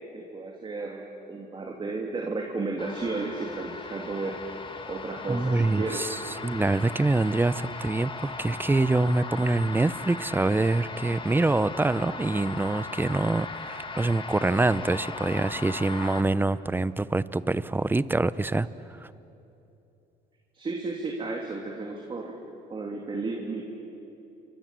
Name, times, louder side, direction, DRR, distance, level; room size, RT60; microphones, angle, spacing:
voice 1, 0.1-1.0 1.3-4.4 4.9-6.1 20.5-22.3 22.7-23.7, right 3 dB, 30° right, 0 dB, 3.0 m, -33 dB
sound 1, 2.8-16.2, left 4 dB, 30° left, 1.8 m, -38 dB
voice 2, 5.3-19.1, right 2 dB, 10° right, 16 dB, 0.7 m, -25 dB
29.5 x 25.0 x 7.6 m, 2.9 s
cardioid pair, 110°, 17 cm